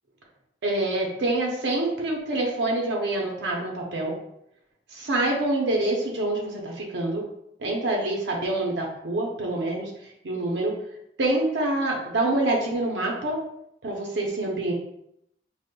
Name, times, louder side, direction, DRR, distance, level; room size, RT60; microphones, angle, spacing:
voice 1, 0.6-4.1 4.9-7.2 7.6-9.9 10.2-10.7 11.2-13.4 13.8-14.7, right 2 dB, 75° right, 0 dB, 0.6 m, -26 dB
5.0 x 2.0 x 2.2 m, 0.77 s
head